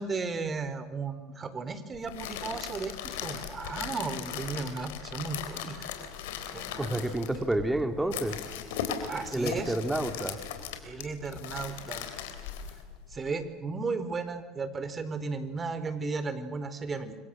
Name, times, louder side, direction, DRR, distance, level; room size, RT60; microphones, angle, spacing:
voice 1, 0.0-5.8 6.5-7.0 9.1-9.7 10.8-12.1 13.1-17.2, right 4 dB, 35° right, 12 dB, 4.0 m, -35 dB
sound 1, 1.9-13.3, left 8 dB, 85° left, 3.7 m, -38 dB
voice 2, 6.8-8.4 9.3-10.4, right 1 dB, 10° right, 7 dB, 3.0 m, -29 dB
29.0 x 23.5 x 7.8 m, 1.2 s
supercardioid pair, 80°, 0 cm